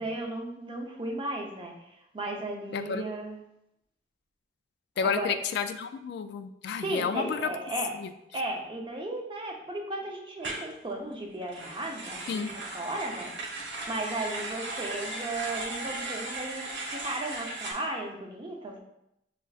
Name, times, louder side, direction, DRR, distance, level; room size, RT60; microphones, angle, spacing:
voice 1, 0.0-3.4 5.0-5.4 6.8-7.9 8.3-18.8, right 2 dB, 30° right, 0 dB, 0.6 m, -35 dB
voice 2, 2.7-3.0 5.0-7.5 7.9-8.1 12.3-12.5, left 6 dB, 65° left, 9 dB, 0.3 m, -31 dB
sound 1, 10.4-10.7 11.4-17.7, right 2 dB, 85° right, 0.9 m, -37 dB
6.8 x 2.4 x 2.4 m, 0.81 s
head